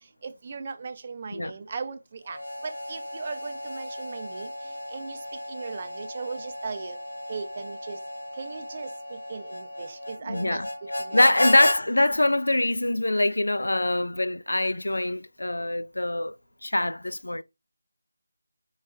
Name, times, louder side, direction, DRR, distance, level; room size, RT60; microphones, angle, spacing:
voice 1, 0.2-4.5 4.9-5.2 5.5-7.0 7.3-8.0 8.4-10.6 11.0-11.3, right 5 dB, 30° right, 0.5 m, -38 dB
Harmonica, 2.3-11.8, left 1 dB, 70° left, 0.9 m, -34 dB
voice 2, 10.2-10.7 11.1-16.3 16.6-17.4, left 1 dB, 90° left, 0.3 m, -24 dB
4.7 x 2.2 x 4.4 m
figure-of-eight pair, 170°, 0 cm